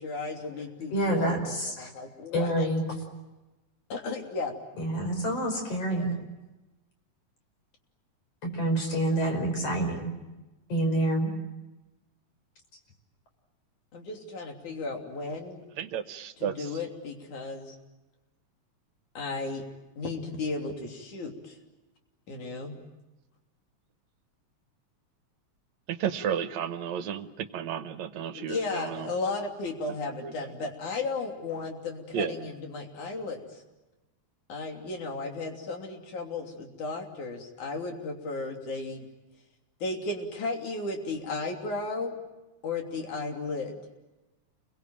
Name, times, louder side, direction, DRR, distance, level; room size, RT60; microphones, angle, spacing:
voice 1, 0.0-2.7 3.9-4.5 5.9-6.2 13.9-15.6 16.4-17.8 19.1-19.6 20.0-21.6 22.3-22.8 28.3-33.6 34.5-39.1 39.8-42.2 42.6-43.8, left 3 dB, 85° left, 2 dB, 4.6 m, -34 dB
voice 2, 0.9-1.9 2.3-2.8 4.8-6.1 8.4-10.0 10.7-11.3, right 1 dB, 55° left, 3 dB, 6.4 m, -27 dB
voice 3, 15.8-16.7 25.9-29.1 30.0-30.5 32.1-32.4, right 8 dB, 70° right, 10 dB, 2.3 m, -33 dB
29.5 x 22.5 x 9.0 m, 1.1 s
omnidirectional pair, 3.3 m